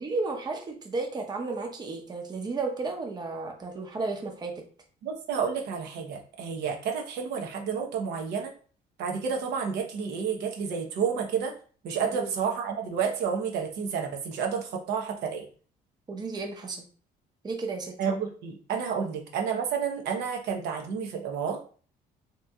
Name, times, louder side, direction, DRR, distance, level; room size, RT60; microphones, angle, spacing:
voice 1, 0.0-4.6 12.1-12.3 16.1-16.8 17.4-18.0, right 3 dB, 25° right, 2 dB, 0.7 m, -33 dB
voice 2, 5.0-8.5 9.0-11.5 11.8-15.5 18.0-21.6, right 6 dB, 75° right, 2 dB, 0.9 m, -30 dB
3.0 x 2.6 x 3.5 m, 0.41 s
cardioid pair, 110°, 17 cm